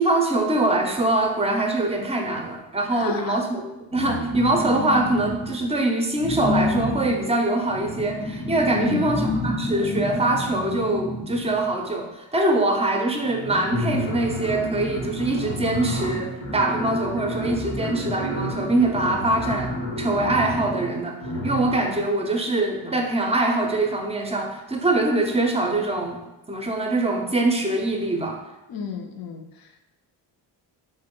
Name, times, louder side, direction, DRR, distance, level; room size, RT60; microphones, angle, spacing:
voice 1, 0.0-3.7 3.9-28.4, right 2 dB, 15° right, 2 dB, 0.5 m, -23 dB
voice 2, 2.9-3.4 8.7-9.3 28.7-29.9, left 5 dB, 50° left, 4 dB, 0.5 m, -32 dB
sound 1, 3.9-5.7 6.2-11.8 12.8-12.9 13.1-22.0, equal, 85° left, 1.1 m, -29 dB
2.9 x 2.1 x 3.6 m, 0.95 s
supercardioid pair, 65°, 45 cm